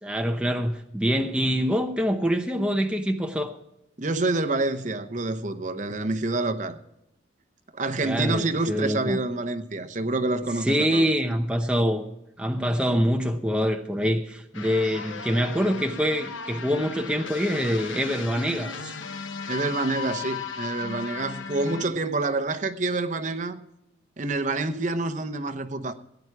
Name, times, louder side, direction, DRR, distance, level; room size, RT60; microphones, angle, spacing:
voice 1, 0.0-3.6 8.0-9.2 10.6-12.0 12.4-19.0, equal, 5° right, 0.7 m, -25 dB
voice 2, 4.0-6.8 7.7-11.1 19.5-23.6 24.2-25.9, right 2 dB, 40° right, 0.8 m, -27 dB
sound 1, 14.5-21.8, left 5 dB, 85° left, 1.1 m, -36 dB
17.0 x 9.5 x 4.8 m
head